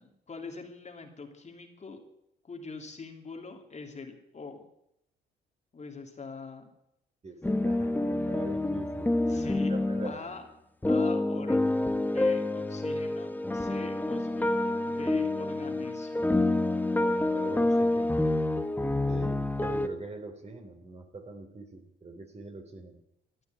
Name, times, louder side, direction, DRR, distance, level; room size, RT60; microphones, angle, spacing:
voice 1, 0.0-2.0 2.5-4.7 5.7-6.7 9.2-10.5 10.9-11.7 12.0-16.3, left 4 dB, 35° left, 4 dB, 2.6 m, -44 dB
voice 2, 7.2-10.2 16.9-18.3 19.1-23.0, right 3 dB, 35° right, 6 dB, 3.1 m, -43 dB
sound 1, 7.4-10.1 10.8-19.9, left 2 dB, 10° left, 1.1 m, -28 dB
14.0 x 9.6 x 9.3 m, 0.80 s
cardioid pair, 90°, 20 cm